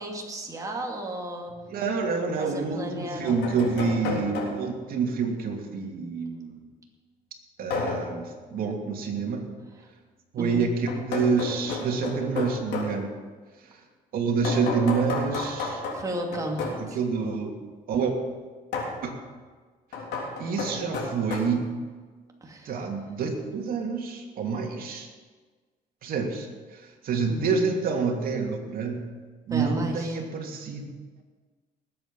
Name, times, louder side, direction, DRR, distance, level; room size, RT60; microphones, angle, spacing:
voice 1, 0.0-1.5 2.4-3.7 4.0-4.2 10.4-10.6 15.9-17.0 22.4-22.7 27.3-27.4 29.5-30.2, right 1 dB, 20° right, 0 dB, 2.7 m, -34 dB
sound 1, 1.5-1.6 2.8-4.8 7.7-8.2 10.9-13.0 14.4-16.9 18.7-19.0 19.9-21.4, left 3 dB, 85° left, 3.7 m, -32 dB
voice 2, 1.7-6.6 7.6-9.5 10.3-10.7 11.0-13.1 14.1-15.8 16.9-17.6 17.9-18.1 19.0-19.1 20.4-21.8 22.6-25.1 26.0-29.1 29.5-30.9, right 5 dB, 60° right, 1 dB, 2.7 m, -28 dB
19.5 x 8.4 x 5.5 m, 1.4 s
cardioid pair, 110°, 17 cm